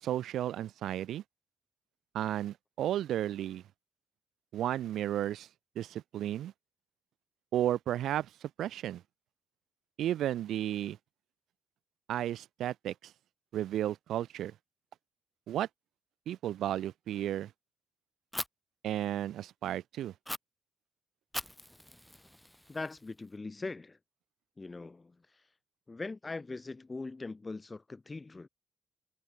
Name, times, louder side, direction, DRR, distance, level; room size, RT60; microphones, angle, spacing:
voice 1, 0.0-1.2 2.1-3.6 4.5-5.5 5.7-6.5 7.5-9.0 10.0-11.0 12.1-13.1 13.5-14.5 15.5-15.7 16.3-17.5 18.8-20.1, right 12 dB, 75° right, 1.0 m, -33 dB
Fire, 18.3-18.5 20.3-20.4 21.3-23.3, equal, 5° left, 1.4 m, -41 dB
voice 2, 22.7-24.0 24.6-25.1 25.9-28.5, left 3 dB, 25° left, 2.1 m, -41 dB
cardioid pair, 90°, 0 cm